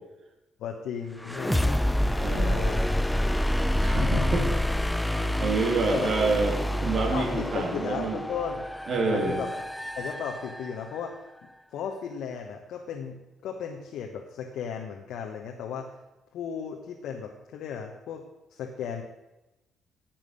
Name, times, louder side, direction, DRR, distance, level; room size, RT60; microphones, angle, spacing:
voice 1, 0.6-1.8 2.3-2.8 4.0-4.3 5.1-5.4 5.9-6.1 7.1-8.7 9.1-9.5 10.0-11.1 11.4-15.9 16.3-18.2 18.5-19.0, left 7 dB, 70° left, 2 dB, 1.1 m, -35 dB
sound 1, 1.2-11.0, left 1 dB, 5° left, 0.4 m, -28 dB
voice 2, 2.2-2.7 3.8-4.5 5.4-8.2 8.9-9.4, right 3 dB, 60° right, 2 dB, 2.6 m, -27 dB
10.0 x 7.5 x 6.4 m, 0.99 s
hypercardioid pair, 50°, 0 cm